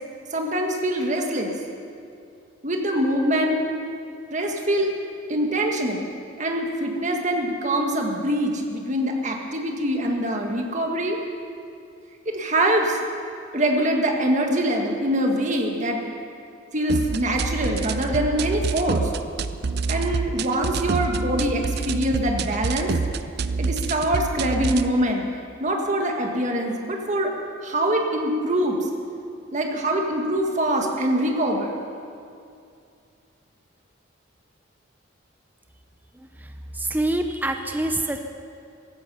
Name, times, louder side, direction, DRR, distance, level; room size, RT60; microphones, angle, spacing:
voice 1, 0.3-1.5 2.6-3.7 4.3-4.9 5.3-6.0 6.4-11.2 12.2-13.0 13.5-16.0 16.7-19.1 19.9-22.9 23.6-25.3 25.6-27.3 27.6-28.8 29.5-31.8, right 1 dB, 40° right, 2 dB, 1.7 m, -24 dB
sound 1, 16.9-24.9, right 4 dB, 55° right, 0.5 m, -27 dB
voice 2, 36.1-38.2, right 1 dB, 10° right, 5 dB, 0.6 m, -26 dB
15.0 x 14.5 x 5.6 m, 2.5 s
head